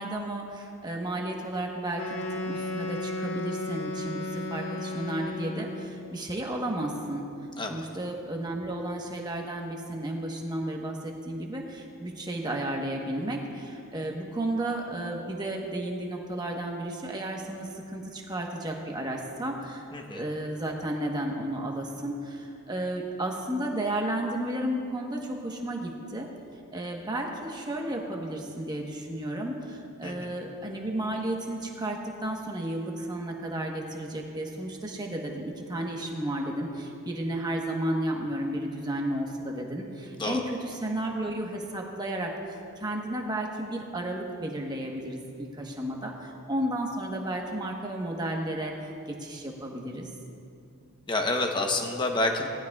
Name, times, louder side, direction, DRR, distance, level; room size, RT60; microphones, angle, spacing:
voice 1, 0.0-7.2 7.7-26.3 26.7-42.3 42.8-50.1, right 1 dB, 20° right, 0 dB, 1.1 m, -33 dB
Wind instrument woodwind instrument, 1.9-6.0, left 2 dB, 60° left, 1.3 m, -34 dB
voice 2, 19.9-20.2 30.0-30.3 40.2-40.4 51.1-52.5, left 2 dB, 20° left, 3 dB, 0.8 m, -28 dB
18.5 x 12.0 x 2.3 m, 2.6 s
head